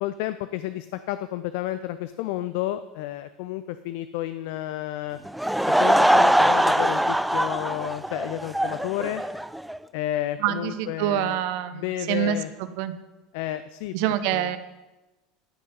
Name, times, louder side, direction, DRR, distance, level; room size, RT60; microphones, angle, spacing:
voice 1, 0.0-5.2 5.7-9.2 9.9-11.4 11.7-12.5 13.3-14.5, left 13 dB, 60° left, 13 dB, 0.4 m, -31 dB
Laughter / Crowd, 5.2-9.8, right 1 dB, 5° right, 0.4 m, -22 dB
voice 2, 10.4-12.9 13.9-14.6, right 11 dB, 60° right, 12 dB, 0.7 m, -26 dB
13.5 x 6.4 x 5.4 m, 1.1 s
figure-of-eight pair, 75°, 0 cm